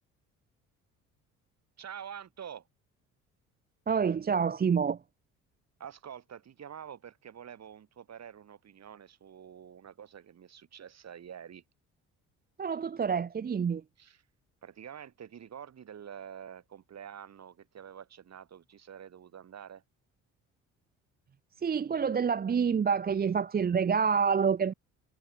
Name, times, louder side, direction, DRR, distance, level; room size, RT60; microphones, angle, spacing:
voice 1, 1.8-2.7 5.8-11.6 14.0-14.2 14.6-19.8, right 8 dB, 40° right, 3.2 m, -47 dB
voice 2, 3.9-5.0 12.6-13.8 21.6-24.7, right 6 dB, 20° right, 0.8 m, -27 dB
figure-of-eight pair, 50°, 41 cm